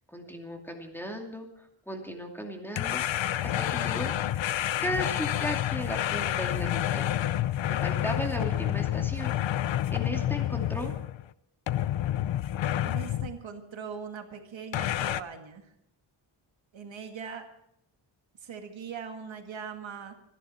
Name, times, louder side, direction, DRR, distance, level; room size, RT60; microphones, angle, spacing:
voice 1, 0.1-1.5 1.9-4.1 4.8-7.2 7.7-9.3 9.9-10.9, equal, 5° left, 2 dB, 2.5 m, -36 dB
sound 1, 2.8-11.2 11.7-13.4 14.7-15.2, left 12 dB, 70° left, 0.7 m, -29 dB
voice 2, 12.8-15.7 16.7-17.5 18.4-20.1, right 6 dB, 70° right, 5 dB, 1.9 m, -41 dB
26.0 x 11.0 x 4.4 m, 0.75 s
wide cardioid pair, 115°, 47 cm